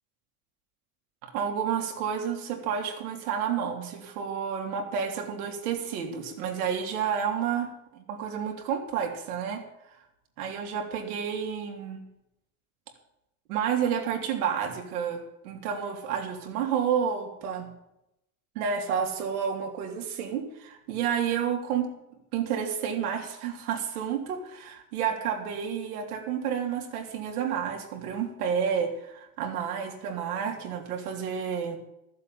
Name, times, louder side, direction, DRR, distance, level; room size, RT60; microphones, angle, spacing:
voice 1, 1.2-10.0 10.4-12.0 13.5-17.7 18.5-21.9 22.3-31.8, right 7 dB, 70° right, 3 dB, 2.9 m, -30 dB
13.5 x 7.6 x 9.2 m, 0.84 s
supercardioid pair, 175°, 46 cm